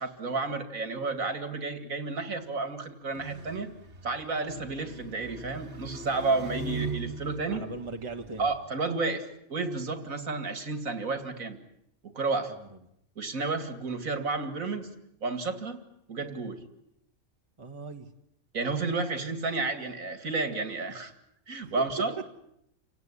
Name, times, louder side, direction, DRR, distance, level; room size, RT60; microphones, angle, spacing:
voice 1, 0.0-3.7 4.0-7.6 8.4-11.6 12.1-12.5 13.2-14.9 15.2-15.8 16.1-16.6 18.5-21.1 21.5-22.2, right 3 dB, 85° right, 9 dB, 2.7 m, -31 dB
sound 1, 3.1-8.6, right 3 dB, 55° right, 2.1 m, -40 dB
voice 2, 7.5-8.5 12.6-12.7 17.6-18.1 21.6-21.7, right 3 dB, 20° right, 3 dB, 1.6 m, -40 dB
29.0 x 18.0 x 9.8 m, 0.78 s
omnidirectional pair, 1.4 m